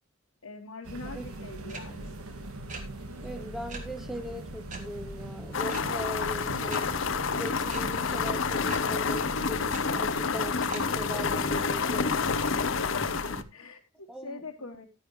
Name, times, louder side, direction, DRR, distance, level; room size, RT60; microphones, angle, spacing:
voice 1, 0.4-2.1 12.4-14.9, left 3 dB, 85° left, 1.2 m, -44 dB
sound 1, 0.8-13.4, right 2 dB, 90° right, 1.5 m, -41 dB
sound 2, 1.7-1.8 2.7-2.8 3.7-3.8 4.7-4.8 5.7-5.8 6.7-6.8 7.7-7.8 8.7-8.8 9.7-9.8 10.7-10.8, right 4 dB, 35° right, 1.6 m, -40 dB
voice 2, 3.2-7.1 7.4-12.3 13.3-13.4 14.1-14.7, equal, ahead, 0.7 m, -40 dB
sound 3, 5.5-13.4, left 5 dB, 60° left, 0.6 m, -29 dB
11.5 x 9.8 x 3.1 m
head